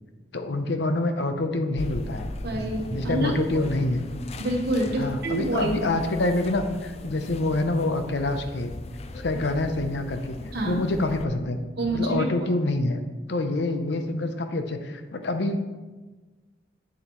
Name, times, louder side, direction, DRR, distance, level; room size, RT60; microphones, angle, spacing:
voice 1, 0.3-2.3 2.9-4.0 5.0-8.7 9.1-10.4 10.6-11.6 11.9-13.0 13.3-15.6, left 2 dB, 65° left, 7 dB, 0.7 m, -26 dB
sound 1, 1.8-11.2, left 2 dB, 35° left, 0.4 m, -39 dB
voice 2, 2.4-3.6 4.4-5.8 10.5-10.8 11.8-12.5, right 1 dB, 60° right, 0 dB, 1.1 m, -27 dB
8.8 x 6.9 x 3.1 m, 1.2 s
head